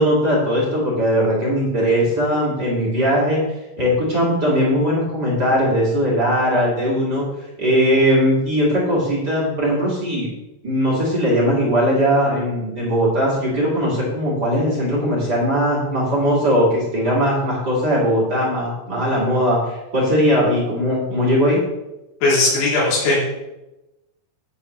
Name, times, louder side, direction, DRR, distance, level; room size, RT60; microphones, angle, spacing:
voice 1, 0.0-3.4 3.8-7.3 7.6-10.3 10.6-21.6, equal, 35° right, -5 dB, 1.8 m, -19 dB
voice 2, 22.2-23.2, left 2 dB, 60° left, -6 dB, 5.4 m, -18 dB
10.5 x 8.7 x 3.3 m, 0.96 s
omnidirectional pair, 5.5 m